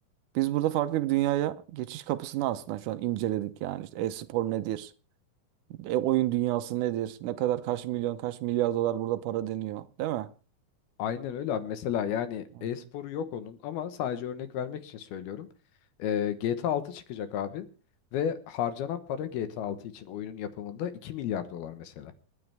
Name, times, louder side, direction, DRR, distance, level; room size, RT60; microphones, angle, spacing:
voice 1, 0.4-4.9 5.8-10.3, right 14 dB, 75° right, 2.0 m, -29 dB
voice 2, 11.0-15.5 16.0-17.7 18.1-22.1, left 9 dB, 85° left, 3.2 m, -33 dB
28.5 x 9.7 x 3.5 m
omnidirectional pair, 4.3 m